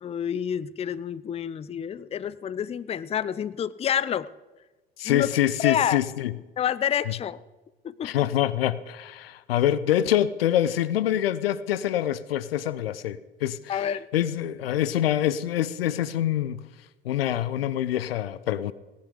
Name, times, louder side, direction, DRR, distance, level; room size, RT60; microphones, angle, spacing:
voice 1, 0.0-4.3 5.0-5.3 5.6-6.0 6.6-7.4 7.8-8.2 13.7-14.1, left 9 dB, 20° left, 0.5 m, -28 dB
voice 2, 5.0-6.3 8.0-16.6 17.0-18.7, left 11 dB, 75° left, 0.6 m, -25 dB
18.0 x 10.5 x 5.0 m
figure-of-eight pair, 65°, 30 cm